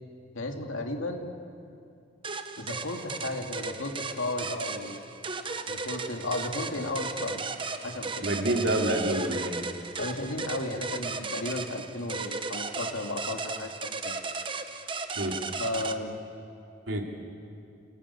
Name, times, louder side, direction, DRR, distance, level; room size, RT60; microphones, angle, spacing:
voice 1, 0.3-1.3 2.6-5.0 5.7-7.6 7.8-8.3 10.0-14.2 15.6-16.1, left 2 dB, 90° left, 3 dB, 2.5 m, -34 dB
sound 1, 2.2-16.0, right 4 dB, 25° right, 0.9 m, -35 dB
voice 2, 8.2-9.6 15.2-15.4 16.9-17.0, right 1 dB, 75° right, 1 dB, 3.1 m, -27 dB
29.5 x 18.0 x 8.6 m, 2.5 s
head